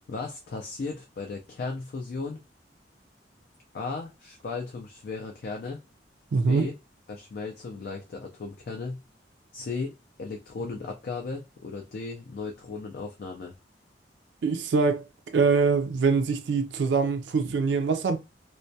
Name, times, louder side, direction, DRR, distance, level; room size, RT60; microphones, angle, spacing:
voice 1, 0.1-2.4 3.7-5.8 6.5-6.7 7.1-9.0 9.5-9.9 10.2-13.5, left 4 dB, 55° left, 0.4 m, -36 dB
voice 2, 6.3-6.7 14.4-15.0 15.3-18.2, right 4 dB, 70° right, 0.4 m, -23 dB
2.2 x 2.1 x 2.6 m
head